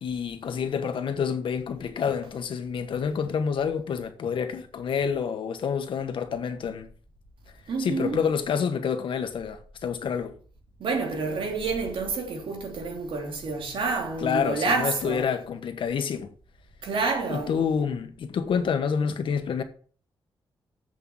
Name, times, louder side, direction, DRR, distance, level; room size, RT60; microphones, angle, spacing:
voice 1, 0.0-6.9 7.8-10.4 14.2-16.3 17.3-19.6, left 6 dB, 75° left, 1.4 m, -28 dB
voice 2, 7.7-8.2 10.8-15.3 16.8-17.5, right 4 dB, 85° right, 3.0 m, -28 dB
7.8 x 6.4 x 7.3 m
wide cardioid pair, 165°, 9 cm